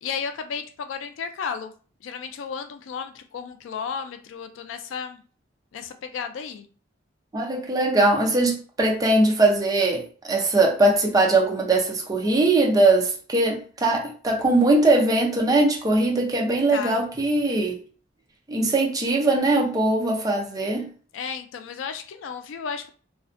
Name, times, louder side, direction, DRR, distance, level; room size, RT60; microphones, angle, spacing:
voice 1, 0.0-1.7 2.0-5.2 5.7-6.7 16.7-17.0 21.1-22.9, left 6 dB, 80° left, 0.3 m, -33 dB
voice 2, 7.3-17.8 18.5-20.9, right 2 dB, 20° right, 0.4 m, -21 dB
2.4 x 2.2 x 2.4 m
head